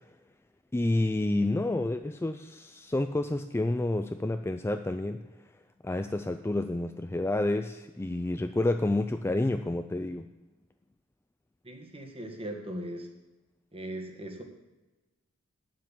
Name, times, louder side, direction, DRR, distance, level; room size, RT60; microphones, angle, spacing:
voice 1, 0.7-5.2 5.8-10.3, left 2 dB, 10° left, 7 dB, 0.3 m, -29 dB
voice 2, 11.6-13.1 13.7-14.4, right 1 dB, 25° right, 3 dB, 1.6 m, -39 dB
9.3 x 7.7 x 7.3 m, 1.1 s
head